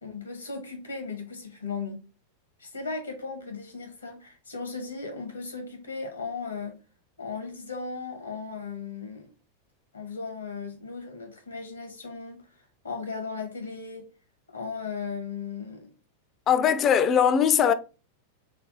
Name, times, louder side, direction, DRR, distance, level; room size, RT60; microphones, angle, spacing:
voice 1, 0.0-2.0 2.6-6.8 7.2-9.3 9.9-12.4 12.8-14.1 14.5-15.9, left 4 dB, 80° left, 1.0 m, -36 dB
voice 2, 16.5-17.7, left 8 dB, 30° left, 0.3 m, -20 dB
3.3 x 2.4 x 3.7 m
figure-of-eight pair, 90°, 0 cm